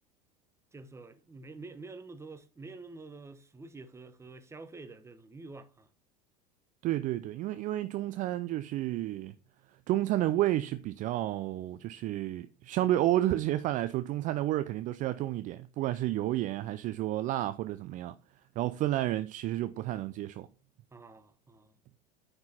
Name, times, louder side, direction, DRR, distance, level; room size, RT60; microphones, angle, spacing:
voice 1, 0.7-5.9 20.9-21.7, right 3 dB, 15° right, 1.0 m, -48 dB
voice 2, 6.8-9.3 9.9-18.2 18.6-20.5, right 14 dB, 40° right, 0.4 m, -31 dB
9.5 x 4.4 x 4.3 m
figure-of-eight pair, 75°, 21 cm